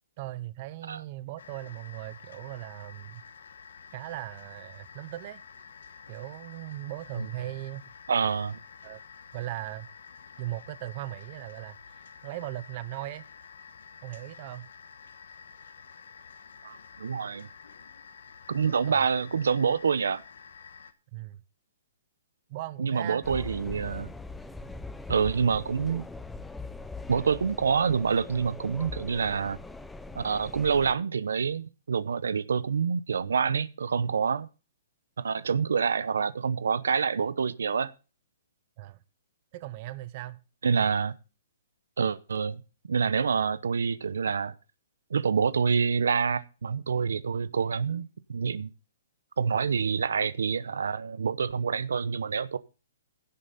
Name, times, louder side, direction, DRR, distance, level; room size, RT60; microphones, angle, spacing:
voice 1, 0.2-3.2 3.9-5.4 6.1-7.9 8.8-9.0 9.3-9.9 10.4-13.2 14.0-14.7 18.7-19.1 21.1-21.4 22.5-23.2 38.8-39.0 39.5-40.4, right 16 dB, 35° right, 0.7 m, -38 dB
sound 1, 1.4-20.9, left 6 dB, 75° left, 1.4 m, -50 dB
voice 2, 8.1-8.6 16.6-17.5 18.5-20.2 22.8-24.1 25.1-26.1 27.1-29.6 30.1-34.5 35.2-37.9 40.6-41.1 42.0-42.6 42.9-44.5 45.1-48.7 49.4-52.6, right 6 dB, 90° right, 0.8 m, -27 dB
sound 2, 23.2-30.9, left 3 dB, 5° left, 0.6 m, -41 dB
16.0 x 7.7 x 4.1 m
hypercardioid pair, 160°, 0 cm